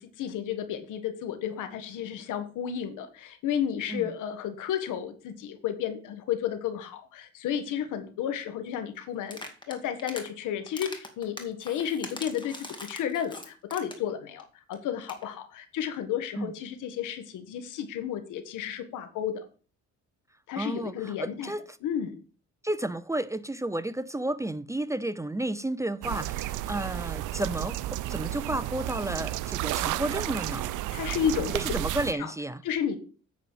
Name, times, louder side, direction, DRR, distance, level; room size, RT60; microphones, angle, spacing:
voice 1, 0.0-9.4 9.7-19.4 20.5-21.5 21.8-22.2 30.9-31.5 32.2-32.3 32.6-33.0, left 9 dB, 85° left, 1.5 m, -32 dB
sound 1, 9.2-10.3 10.7-14.1 14.4-14.5 14.7-14.8 15.0-15.2, left 2 dB, 15° left, 2.1 m, -41 dB
voice 2, 20.6-21.8 22.6-30.7 31.5-32.6, right 1 dB, 10° right, 0.5 m, -32 dB
sound 2, 26.0-32.1, right 15 dB, 85° right, 0.5 m, -32 dB
9.3 x 4.1 x 7.3 m
cardioid pair, 90°, 30 cm